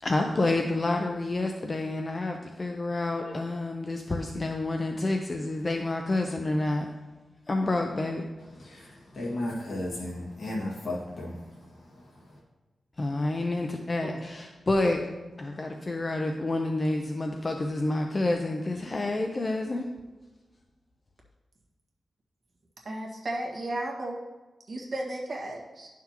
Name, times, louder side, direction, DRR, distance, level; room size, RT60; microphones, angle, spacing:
voice 1, 0.0-6.9 7.5-8.2 13.0-15.0 15.4-20.0, left 2 dB, 30° left, 3 dB, 0.5 m, -28 dB
voice 2, 8.5-12.4, left 1 dB, 60° left, -5 dB, 1.9 m, -35 dB
voice 3, 22.8-24.2 24.7-25.9, right 1 dB, 45° right, -2 dB, 1.6 m, -34 dB
11.0 x 5.9 x 2.9 m, 1.2 s
wide cardioid pair, 125°, 0 cm